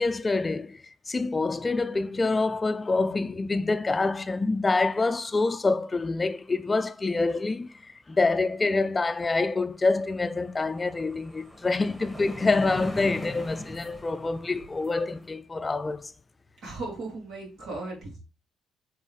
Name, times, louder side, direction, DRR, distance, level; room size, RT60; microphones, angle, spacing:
voice 1, 0.0-16.1, left 3 dB, 25° left, 0.4 m, -26 dB
sound 1, 9.2-9.3 9.6-15.3, equal, 5° right, 1.6 m, -40 dB
voice 2, 16.6-18.2, right 2 dB, 75° right, 3.1 m, -36 dB
7.5 x 4.0 x 3.2 m
cardioid pair, 90°, 0 cm